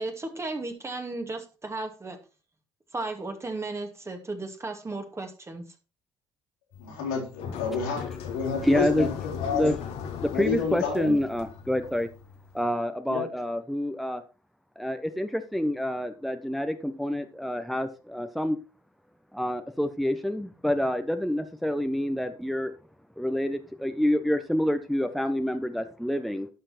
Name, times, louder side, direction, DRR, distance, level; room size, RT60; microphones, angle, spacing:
voice 1, 0.0-2.2 2.9-5.6, right 2 dB, 25° right, 4 dB, 2.4 m, -35 dB
sound 1, 6.7-12.6, left 7 dB, 70° left, 1.7 m, -39 dB
voice 2, 6.8-9.1 9.4-9.7 10.3-11.1 13.1-13.2, left 5 dB, 90° left, -3 dB, 4.0 m, -29 dB
voice 3, 7.5-8.0 8.5-9.1 9.5-9.8 10.2-12.1 12.5-14.2 14.8-18.6 19.3-22.7 23.2-26.5, left 1 dB, ahead, 7 dB, 1.2 m, -28 dB
12.0 x 5.7 x 4.4 m, 0.34 s
hypercardioid pair, 55°, 11 cm